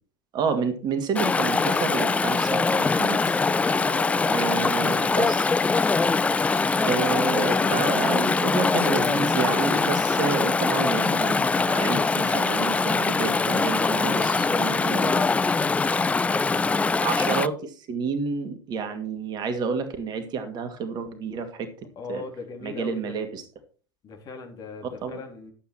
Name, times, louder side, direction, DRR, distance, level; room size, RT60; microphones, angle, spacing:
voice 1, 0.3-3.4 4.3-5.5 6.8-15.4 17.0-21.7 22.1-22.2 22.6-23.4 25.0-25.2, right 5 dB, 35° right, 8 dB, 2.1 m, -29 dB
Chatter / Stream, 1.1-17.5, left 4 dB, 10° left, 0.5 m, -23 dB
voice 2, 3.8-5.0 7.2-7.9 21.9-23.2 24.0-25.5, left 4 dB, 35° left, 3 dB, 3.2 m, -39 dB
11.5 x 8.4 x 4.4 m, 0.39 s
figure-of-eight pair, 80°, 12 cm